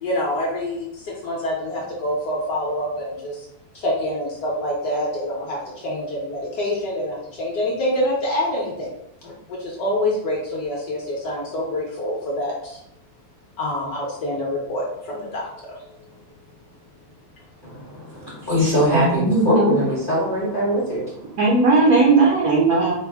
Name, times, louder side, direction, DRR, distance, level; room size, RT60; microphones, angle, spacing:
voice 1, 0.0-3.4 3.7-8.9 9.2-12.8 13.6-15.8, left 1 dB, 60° left, -4 dB, 1.0 m, -26 dB
voice 2, 17.6-21.4 22.2-22.3, equal, 45° left, -7 dB, 0.6 m, -23 dB
voice 3, 18.9-19.8 21.4-22.9, right 3 dB, 85° right, -3 dB, 0.8 m, -17 dB
5.1 x 2.0 x 3.3 m, 0.79 s
omnidirectional pair, 2.4 m